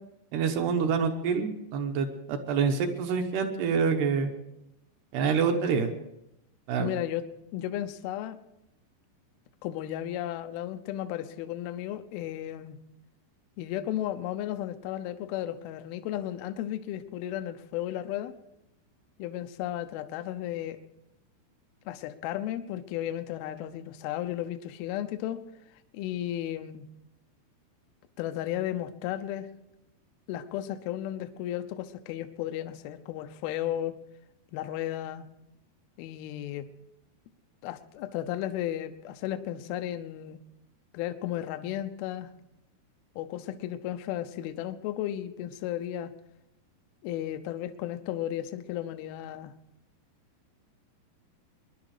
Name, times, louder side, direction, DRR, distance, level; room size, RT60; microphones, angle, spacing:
voice 1, 0.3-4.3 5.1-5.9 6.7-6.9, right 6 dB, 70° right, 5 dB, 2.9 m, -27 dB
voice 2, 6.8-7.2 7.5-8.4 9.6-12.8 13.6-18.3 19.2-20.8 21.9-25.4 25.9-26.9 28.2-29.5 30.3-33.9 34.5-35.3 36.0-36.7 37.6-40.4 40.9-42.3 43.2-46.1 47.0-49.5, left 12 dB, 80° left, 9 dB, 2.3 m, -34 dB
22.0 x 11.0 x 4.9 m, 0.85 s
omnidirectional pair, 5.3 m